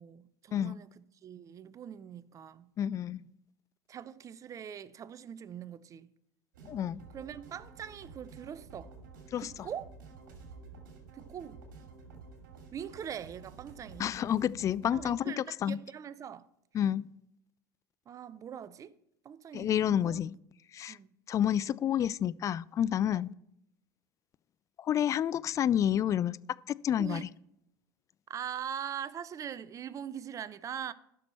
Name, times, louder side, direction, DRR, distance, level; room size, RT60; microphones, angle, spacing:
voice 1, 0.0-2.7 3.9-6.1 7.1-8.9 9.4-9.9 11.1-11.6 12.7-14.1 14.9-16.5 18.1-19.0 19.2-20.2 20.9-21.1 23.1-23.3 27.0-27.3 28.3-30.9, right 9 dB, 30° right, 0.6 m, -42 dB
voice 2, 2.8-3.2 6.6-7.0 9.3-9.5 14.0-15.8 16.7-17.1 19.5-20.3 20.7-21.0 21.3-23.3 24.8-26.4 26.7-27.3, left 10 dB, 30° left, 0.3 m, -29 dB
sound 1, 6.5-15.1, right 4 dB, 75° right, 2.5 m, -51 dB
14.5 x 6.2 x 4.4 m
hypercardioid pair, 90°, 10 cm